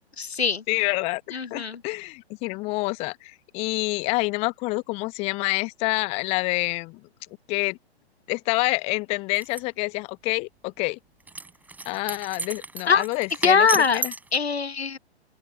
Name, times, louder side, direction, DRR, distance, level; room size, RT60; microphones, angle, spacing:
voice 1, 0.2-0.6 1.3-1.8 12.9-13.0 13.4-14.0 14.3-15.0, left 5 dB, 70° left, 1.1 m, -22 dB
voice 2, 0.7-7.0 7.5-7.8 8.3-11.0 11.8-14.1, left 25 dB, 20° left, 1.0 m, -27 dB
sound 1, 9.3-9.6 11.3-14.4, right 3 dB, 5° right, 4.3 m, -34 dB
open air
figure-of-eight pair, 125°, 33 cm